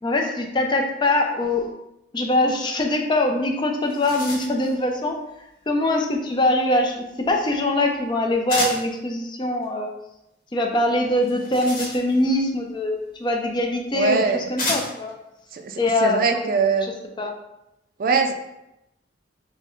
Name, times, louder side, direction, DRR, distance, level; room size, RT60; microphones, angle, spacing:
voice 1, 0.0-1.7 2.1-5.2 5.7-9.9 10.5-15.1 15.8-16.5 16.8-16.9 17.2-17.3, left 1 dB, 25° left, 3 dB, 0.4 m, -23 dB
sound 1, 3.4-3.5 3.7-4.7 8.5-8.9 11.2-12.4 13.5-13.6 14.6-15.1, left 1 dB, 45° left, 1.0 m, -30 dB
voice 2, 13.9-14.5 15.5-16.9 18.0-18.3, right 4 dB, 50° right, 5 dB, 0.3 m, -22 dB
4.5 x 2.1 x 3.0 m, 0.87 s
head